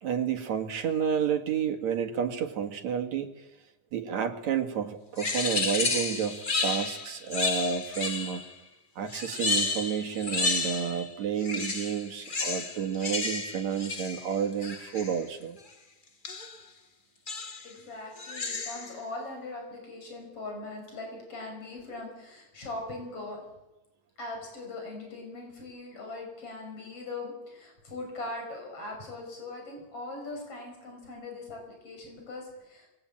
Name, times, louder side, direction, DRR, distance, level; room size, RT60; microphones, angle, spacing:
voice 1, 0.0-3.3 3.9-8.5 9.0-15.6, right 7 dB, 70° right, 6 dB, 3.2 m, -30 dB
sound 1, 5.2-8.5 9.1-11.1 11.4-15.2 16.2-16.6 17.3-17.7 18.2-19.0, left 3 dB, 80° left, 0.4 m, -32 dB
voice 2, 17.6-23.4 24.2-32.9, left 2 dB, 50° left, 2 dB, 7.6 m, -40 dB
27.5 x 22.0 x 8.9 m, 1.0 s
omnidirectional pair, 3.4 m